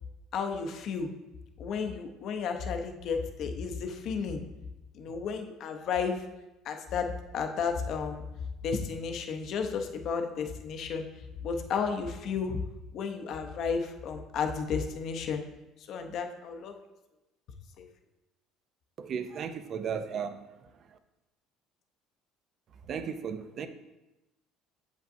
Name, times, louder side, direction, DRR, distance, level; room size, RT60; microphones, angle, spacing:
voice 1, 0.3-1.1 1.6-4.4 4.9-6.2 6.6-8.2 8.6-11.0 11.4-12.6 12.9-15.4 15.9-16.8 17.8-17.9, left 5 dB, 55° left, 0.7 m, -33 dB
voice 2, 19.0-20.4 20.9-21.0 22.9-23.7, right 7 dB, 45° right, 0.5 m, -35 dB
7.6 x 5.2 x 2.6 m
cardioid pair, 125°, 0 cm